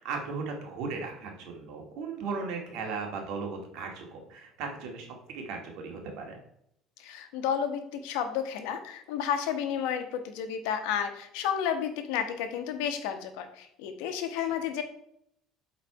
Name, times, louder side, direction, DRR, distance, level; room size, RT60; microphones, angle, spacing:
voice 1, 0.0-6.4 14.4-14.6, right 4 dB, 70° right, 3 dB, 1.9 m, -37 dB
voice 2, 7.0-14.8, left 8 dB, 90° left, 7 dB, 1.1 m, -31 dB
8.1 x 4.1 x 4.7 m, 0.73 s
cardioid pair, 145°, 0 cm